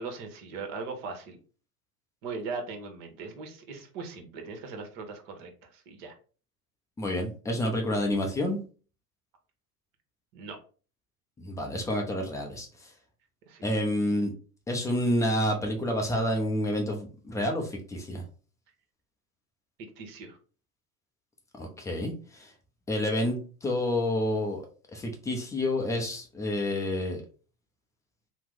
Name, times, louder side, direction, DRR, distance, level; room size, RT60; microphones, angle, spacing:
voice 1, 0.0-1.4 2.2-6.1 10.3-10.6 13.5-13.6 20.0-20.4, right 4 dB, 50° right, 4 dB, 0.9 m, -39 dB
voice 2, 7.0-8.6 11.4-12.9 13.6-14.3 14.7-18.2 21.6-22.5 22.9-24.6 24.9-27.2, left 1 dB, 10° left, 2 dB, 0.3 m, -29 dB
2.8 x 2.0 x 3.5 m, 0.38 s
hypercardioid pair, 80°, 46 cm